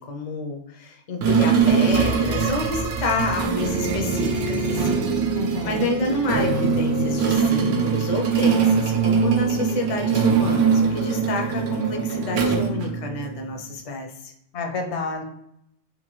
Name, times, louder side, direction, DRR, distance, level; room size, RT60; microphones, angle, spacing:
voice 1, 0.0-5.0 5.6-14.3, left 3 dB, 55° left, 2 dB, 0.4 m, -29 dB
sound 1, 1.2-13.5, right 5 dB, 70° right, 0.8 m, -22 dB
voice 2, 5.3-6.0 14.5-15.2, left 4 dB, 75° left, 4 dB, 0.9 m, -29 dB
2.9 x 2.5 x 3.0 m, 0.74 s
omnidirectional pair, 1.2 m